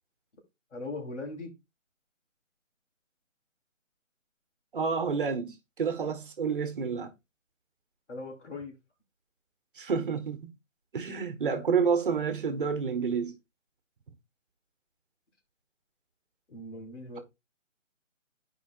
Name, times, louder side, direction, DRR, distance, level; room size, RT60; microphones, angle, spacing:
voice 1, 0.7-1.5 8.1-8.7 16.5-17.2, left 2 dB, 60° left, 3.4 m, -39 dB
voice 2, 4.7-7.1 9.8-10.5 10.9-13.3, right 5 dB, 40° right, 1.3 m, -29 dB
12.0 x 5.0 x 2.4 m
figure-of-eight pair, 155°, 39 cm